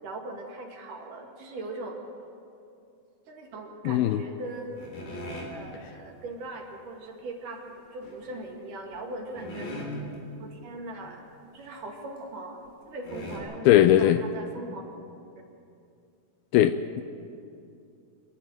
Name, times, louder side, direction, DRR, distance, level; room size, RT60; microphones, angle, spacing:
voice 1, 0.0-2.0 3.3-4.9 5.5-9.9 10.4-11.2 11.5-14.8, right 2 dB, 55° right, 0 dB, 3.4 m, -40 dB
voice 2, 3.9-4.2 13.7-14.2 16.5-17.0, left 12 dB, 80° left, 11 dB, 2.3 m, -19 dB
sound 1, 4.8-5.6 8.0-8.4 8.9-9.0 9.4-10.2 10.7-10.8 11.0-11.2 11.7-11.8 12.7-12.8 13.1-13.4, equal, 60° left, 5.1 m, -38 dB
27.0 x 11.0 x 9.0 m, 2.5 s
omnidirectional pair, 4.6 m